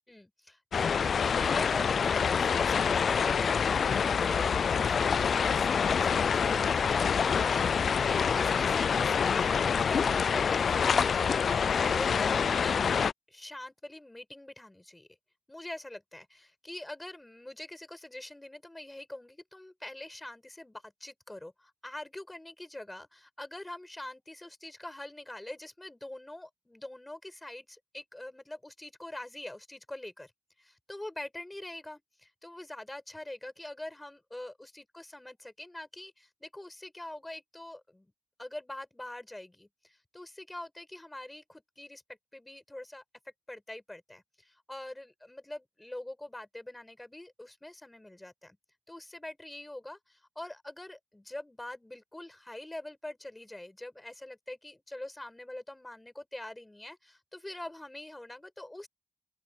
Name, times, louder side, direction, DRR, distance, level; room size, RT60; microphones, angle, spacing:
voice 1, 0.1-12.8 13.3-15.1 15.5-30.3 30.6-38.1 38.4-42.0 42.3-43.0 43.5-48.6 48.9-58.9, left 1 dB, 15° left, 4.8 m, -44 dB
sound 1, 0.7-13.1, left 6 dB, 65° left, 0.3 m, -26 dB
open air
wide cardioid pair, 125°, 0 cm